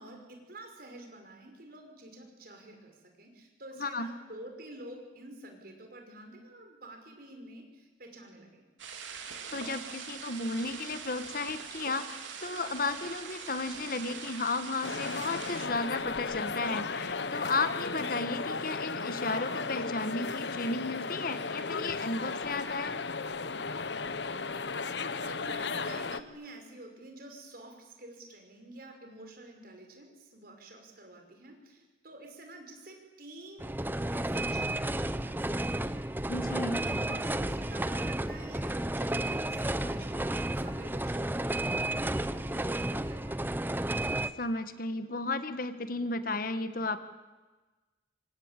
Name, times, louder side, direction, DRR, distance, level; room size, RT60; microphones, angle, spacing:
voice 1, 0.0-8.7 24.4-24.7 25.2-33.7 34.1-36.1 36.5-41.5 41.8-43.4, right 1 dB, 50° right, 4 dB, 5.7 m, -49 dB
voice 2, 3.8-4.1 9.5-23.0 36.3-36.8 44.4-47.0, left 3 dB, 50° left, 10 dB, 1.5 m, -34 dB
sound 1, 8.8-15.7, right 6 dB, 90° right, 3.3 m, -43 dB
sound 2, 14.8-26.2, left 4 dB, 65° left, 1.1 m, -35 dB
sound 3, 33.6-44.3, right 1 dB, 10° right, 0.8 m, -32 dB
26.0 x 25.0 x 9.0 m, 1.2 s
head